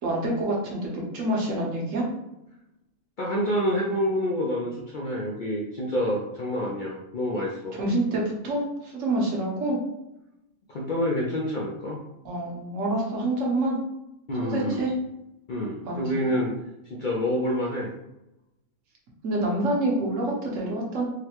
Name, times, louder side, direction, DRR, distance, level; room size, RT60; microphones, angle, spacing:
voice 1, 0.0-2.1 7.7-9.8 12.2-13.8 14.5-14.9 15.8-16.1 19.2-21.0, right 1 dB, 65° right, -2 dB, 1.2 m, -27 dB
voice 2, 3.2-7.8 10.7-12.0 14.3-14.8 15.5-16.5 16.8-17.9, equal, 70° left, -3 dB, 0.4 m, -27 dB
3.9 x 2.1 x 2.9 m, 0.90 s
omnidirectional pair, 1.5 m